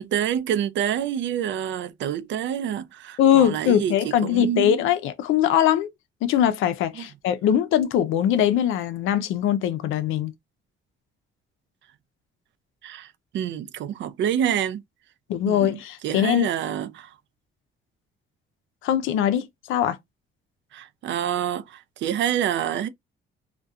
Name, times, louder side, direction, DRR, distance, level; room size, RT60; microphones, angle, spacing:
voice 1, 0.0-4.8 7.0-7.1 12.8-13.1 13.3-14.8 15.5-17.1 20.7-22.9, right 10 dB, 70° right, 0.4 m, -27 dB
voice 2, 3.2-5.9 6.2-10.3 15.3-16.5 18.8-20.0, left 10 dB, 85° left, 0.4 m, -21 dB
2.3 x 2.2 x 2.5 m
cardioid pair, 90°, 20 cm